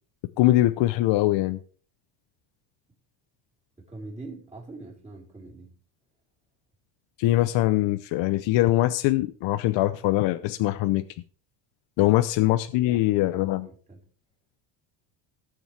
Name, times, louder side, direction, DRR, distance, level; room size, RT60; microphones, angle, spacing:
voice 1, 0.4-1.6 7.2-11.0 12.0-13.7, left 16 dB, 60° left, 0.8 m, -22 dB
voice 2, 3.8-5.8 12.0-12.1 12.9-14.1, right 2 dB, 15° right, 4.1 m, -43 dB
18.5 x 7.0 x 3.4 m
cardioid pair, 125°, 49 cm